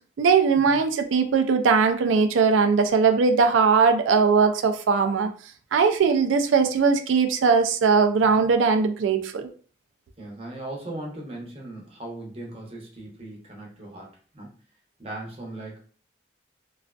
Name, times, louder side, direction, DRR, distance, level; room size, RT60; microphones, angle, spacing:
voice 1, 0.2-5.3 5.7-9.5, right 5 dB, 85° right, 7 dB, 0.3 m, -20 dB
voice 2, 10.2-14.6 15.0-15.9, right 1 dB, 30° right, -2 dB, 0.7 m, -38 dB
2.4 x 2.3 x 2.2 m, 0.42 s
head